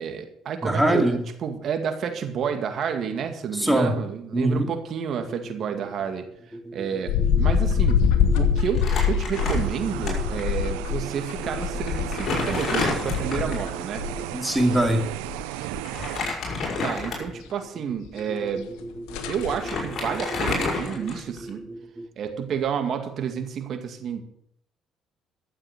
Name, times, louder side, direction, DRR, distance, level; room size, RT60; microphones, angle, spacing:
voice 1, 0.0-6.3 6.7-8.0 8.3-14.0 16.8-18.7 19.3-21.6 22.2-24.2, right 7 dB, 60° right, 6 dB, 2.1 m, -30 dB
voice 2, 0.6-1.2 3.5-4.0 4.3-4.7 6.6-6.7 8.2-8.4 14.0-15.1 19.1-19.3 21.4-22.1, right 1 dB, 5° right, 4 dB, 2.5 m, -24 dB
sound 1, 7.1-14.2 14.6-15.4 15.7-15.9 16.2-16.3 18.4-18.5 18.8-18.9 19.1-19.6, left 7 dB, 85° left, 1.3 m, -24 dB
Crumpling crinkling, 8.7-10.1 10.4-10.5 11.4-11.5 11.9-13.7 15.8-17.5 18.0-18.2 19.1-19.2 19.4-21.5, left 3 dB, 60° left, 5.7 m, -29 dB
sound 2, 9.3-16.2, right 16 dB, 90° right, 0.5 m, -34 dB
13.0 x 7.5 x 6.7 m, 0.69 s
supercardioid pair, 65°, 0 cm